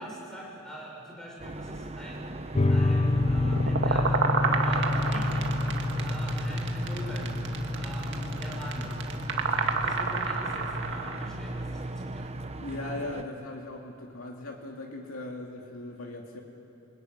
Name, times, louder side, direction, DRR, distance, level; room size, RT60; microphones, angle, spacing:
voice 1, 0.0-2.3 2.7-4.2 4.6-5.6 6.0-7.3 7.8-8.9 9.7-12.3, equal, 5° left, -3 dB, 6.5 m, -43 dB
sound 1, 1.4-13.2, right 1 dB, 30° right, 1.0 m, -37 dB
sound 2, 2.5-11.5, left 2 dB, 30° left, 0.7 m, -29 dB
sound 3, 3.1-11.3, right 4 dB, 60° right, 1.9 m, -30 dB
voice 2, 4.7-5.2 12.6-16.4, left 2 dB, 80° left, 0 dB, 2.5 m, -39 dB
28.0 x 20.5 x 9.5 m, 2.8 s
head